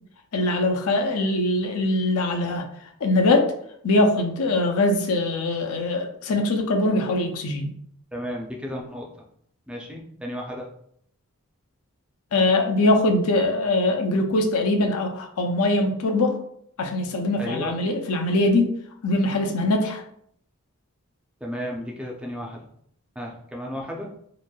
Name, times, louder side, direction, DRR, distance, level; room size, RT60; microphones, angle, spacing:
voice 1, 0.3-2.6 3.0-3.5 3.8-7.7 12.3-16.3 16.8-18.7 19.0-20.0, left 2 dB, 75° left, 3 dB, 0.5 m, -22 dB
voice 2, 8.1-9.1 9.7-10.7 17.4-17.8 21.4-22.7 23.2-24.1, equal, 5° right, -1 dB, 0.4 m, -33 dB
3.0 x 2.5 x 2.2 m, 0.67 s
head